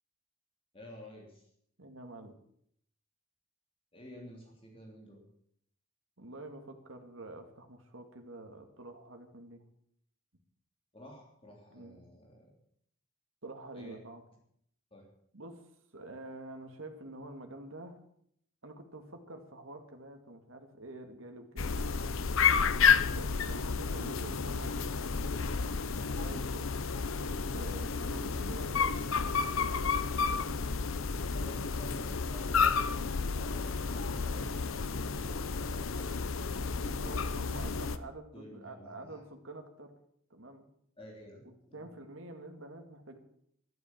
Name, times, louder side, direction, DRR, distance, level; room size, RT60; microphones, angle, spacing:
voice 1, 0.7-1.5 3.9-5.2 10.9-12.5 13.7-14.0 14.9-15.0 31.3-37.3 38.3-39.2 41.0-41.9, equal, 25° left, -1 dB, 3.3 m, -52 dB
voice 2, 1.8-2.4 6.2-9.6 11.7-12.0 13.4-14.2 15.3-15.6 15.9-18.0 18.6-22.2 23.1-25.4 26.1-26.7 27.2-30.6 36.7-39.9 40.3-40.6 41.7-43.2, right 2 dB, 75° right, 5 dB, 2.3 m, -48 dB
sound 1, 21.6-38.0, left 5 dB, 80° left, 0.8 m, -31 dB
12.0 x 12.0 x 7.5 m, 0.69 s
head